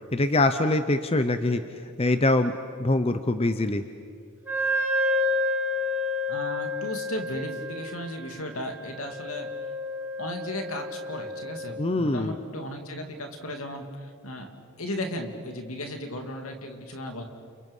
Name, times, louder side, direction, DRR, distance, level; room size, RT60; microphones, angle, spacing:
voice 1, 0.1-1.6 2.0-3.8 11.8-12.3, left 2 dB, 25° left, 9 dB, 0.7 m, -24 dB
Wind instrument woodwind instrument, 4.5-11.8, left 1 dB, 10° right, 4.4 m, -30 dB
voice 2, 6.3-9.5 10.2-14.5 14.8-17.2, left 1 dB, 75° left, 5 dB, 2.7 m, -35 dB
29.5 x 29.5 x 5.5 m, 2.2 s
head